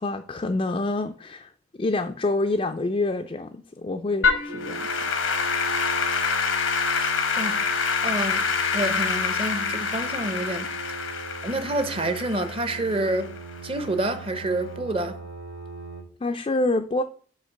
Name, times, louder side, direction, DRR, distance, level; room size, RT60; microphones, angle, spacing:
voice 1, 0.0-1.5 1.8-5.0 16.2-17.0, left 2 dB, 30° left, 0.3 m, -27 dB
Applause / Keyboard (musical), 4.2-13.6, left 5 dB, 90° left, 1.0 m, -26 dB
sound 1, 4.5-16.0, right 4 dB, 85° right, 1.7 m, -39 dB
voice 2, 8.0-8.5 8.7-10.7 11.4-13.3 13.6-15.2, right 1 dB, 30° right, 0.6 m, -28 dB
8.0 x 2.8 x 5.9 m
head